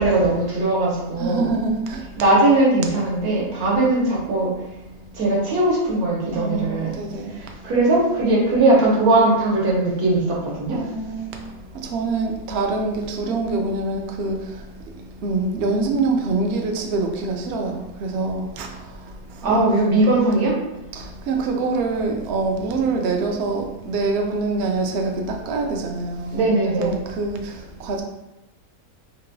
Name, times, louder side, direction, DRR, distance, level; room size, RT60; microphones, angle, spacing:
voice 1, 0.0-1.5 2.2-4.5 5.1-6.9 7.3-10.8 19.4-20.5 26.3-27.0, right 2 dB, 85° right, 1.4 m, -19 dB
voice 2, 1.2-2.2 6.3-7.4 7.7-7.8 10.7-19.8 20.9-26.5 26.8-28.0, right 3 dB, 70° right, 0.6 m, -25 dB
3.8 x 2.2 x 2.6 m
omnidirectional pair, 1.6 m